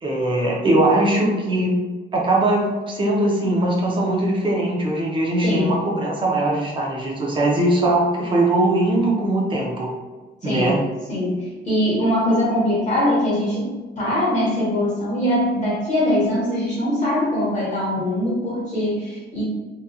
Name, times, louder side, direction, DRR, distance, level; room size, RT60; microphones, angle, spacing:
voice 1, 0.0-1.8 2.1-9.9 10.4-10.8, right 1 dB, 25° right, -3 dB, 0.5 m, -20 dB
voice 2, 10.4-10.7 11.1-19.4, left 1 dB, 40° left, -7 dB, 1.0 m, -22 dB
2.8 x 2.4 x 2.2 m, 1.3 s
cardioid pair, 175°, 19 cm